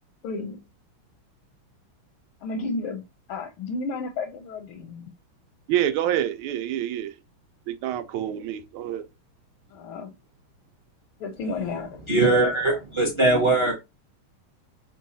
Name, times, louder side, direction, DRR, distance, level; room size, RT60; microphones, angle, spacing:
voice 1, 0.2-0.6 2.4-3.0 3.3-5.1 9.7-10.1 11.2-12.8, left 4 dB, 85° left, 1.5 m, -32 dB
voice 2, 5.7-7.1 7.7-9.1, right 11 dB, 85° right, 1.4 m, -27 dB
voice 3, 12.1-13.7, right 2 dB, 35° right, 0.4 m, -20 dB
5.9 x 2.3 x 2.7 m
omnidirectional pair, 2.3 m